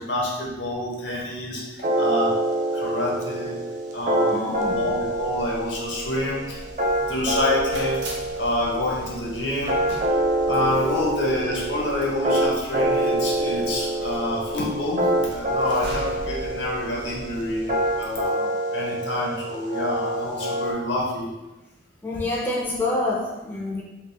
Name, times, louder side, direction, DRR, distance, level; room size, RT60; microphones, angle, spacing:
voice 1, 0.0-2.4 2.7-3.6 3.9-6.7 7.0-8.1 8.4-10.1 10.5-21.3, left 1 dB, 75° left, -2 dB, 0.9 m, -27 dB
sound 1, 1.8-20.7, right 1 dB, 40° right, 0.5 m, -26 dB
voice 2, 4.3-4.9 22.0-23.8, left 2 dB, 10° left, -3 dB, 0.3 m, -27 dB
sound 2, 4.5-18.3, equal, 90° right, 1.0 m, -41 dB
3.4 x 2.3 x 3.3 m, 1.0 s
head